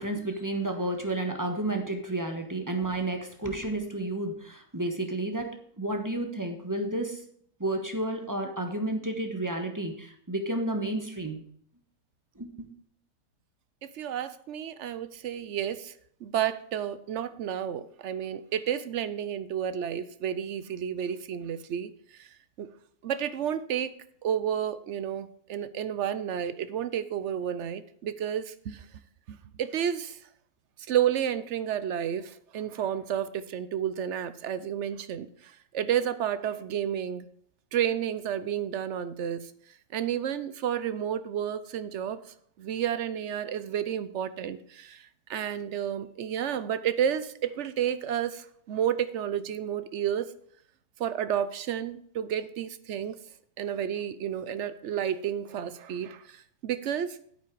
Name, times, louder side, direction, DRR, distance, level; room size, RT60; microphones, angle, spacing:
voice 1, 0.0-7.2 7.6-11.5 12.3-12.7, right 1 dB, 15° right, 5 dB, 1.2 m, -31 dB
voice 2, 14.0-15.9 16.2-21.9 22.2-22.3 22.6-22.7 23.0-23.9 24.2-28.8 29.3-30.2 30.9-35.3 35.7-37.2 37.7-39.5 39.9-42.2 42.6-45.0 45.3-50.3 51.0-53.2 53.6-57.2, right 9 dB, 60° right, 14 dB, 0.8 m, -31 dB
9.0 x 8.5 x 4.7 m, 0.63 s
omnidirectional pair, 1.6 m